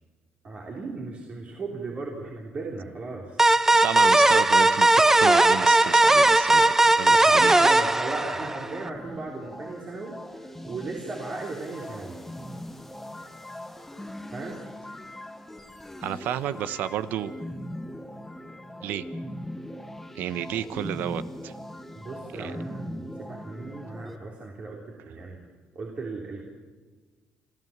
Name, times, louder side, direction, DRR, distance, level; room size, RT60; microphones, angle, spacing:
voice 1, 0.4-3.4 7.1-12.2 14.3-14.6 22.0-25.4 25.7-26.4, right 3 dB, 45° right, -2 dB, 3.5 m, -37 dB
sound 1, 3.4-8.8, right 2 dB, 15° right, 0.8 m, -18 dB
voice 2, 3.8-7.6 16.0-17.3 18.8-19.0 20.1-21.5 22.4-22.5 23.3-23.4, right 10 dB, 80° right, 14 dB, 1.0 m, -31 dB
sound 2, 8.2-24.2, left 1 dB, 5° left, 1.3 m, -40 dB
26.5 x 14.5 x 7.4 m, 1.4 s
cardioid pair, 100°, 3 cm